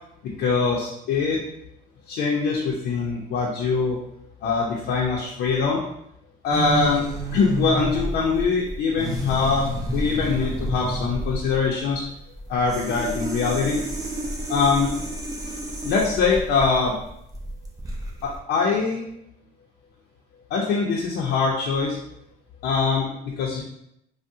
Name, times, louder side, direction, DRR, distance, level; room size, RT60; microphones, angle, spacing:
voice 1, 0.2-1.4 2.1-4.0 4.4-5.8 6.4-7.0 7.3-12.0 12.5-13.8 14.5-14.9 15.8-17.0 18.2-19.0 20.5-22.0 22.6-23.6, left 4 dB, 70° left, -2 dB, 0.5 m, -23 dB
sound 1, 6.5-18.4, right 1 dB, 20° right, 0.6 m, -30 dB
3.5 x 2.0 x 2.6 m, 0.78 s
cardioid pair, 110°, 17 cm